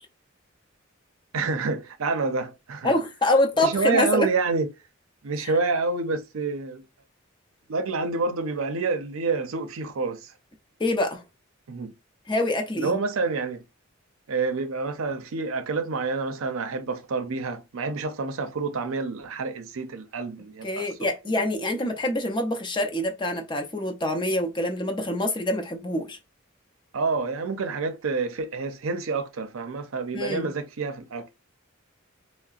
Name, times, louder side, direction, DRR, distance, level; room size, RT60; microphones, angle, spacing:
voice 1, 1.3-3.0 3.6-4.7 5.2-6.8 7.7-10.3 11.7-11.9 12.8-13.6 14.3-20.9 21.3-21.4 26.9-31.3, right 4 dB, 85° right, 0.6 m, -28 dB
voice 2, 2.8-4.3 5.4-5.5 10.8-11.2 12.3-13.0 20.6-26.2 30.1-30.5, left 1 dB, 25° left, 0.6 m, -25 dB
3.7 x 2.0 x 2.4 m
head